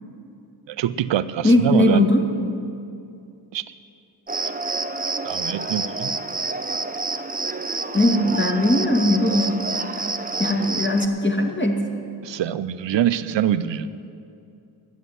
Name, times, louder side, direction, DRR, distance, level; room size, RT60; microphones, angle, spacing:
voice 1, 0.7-2.1 3.5-3.6 5.2-6.1 12.2-13.9, right 10 dB, 65° right, 15 dB, 0.7 m, -24 dB
voice 2, 1.4-2.2 7.9-9.5 10.4-11.8, left 1 dB, 20° left, 2 dB, 2.1 m, -19 dB
Cricket, 4.3-11.1, right 3 dB, 20° right, 0.8 m, -28 dB
11.5 x 8.0 x 9.4 m, 2.6 s
supercardioid pair, 45°, 49 cm